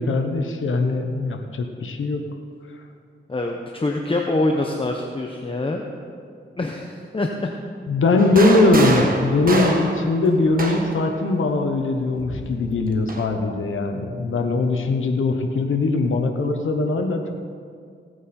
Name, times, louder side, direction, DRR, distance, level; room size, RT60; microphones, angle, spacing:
voice 1, 0.0-2.2 7.9-17.3, left 2 dB, 90° left, 4 dB, 1.1 m, -21 dB
voice 2, 3.3-5.8 6.6-7.5, left 2 dB, 25° left, 2 dB, 1.0 m, -25 dB
sound 1, 8.2-11.1 12.2-13.3, right 2 dB, 45° right, 1.6 m, -26 dB
17.0 x 9.2 x 4.4 m, 2.3 s
wide cardioid pair, 75°, 20 cm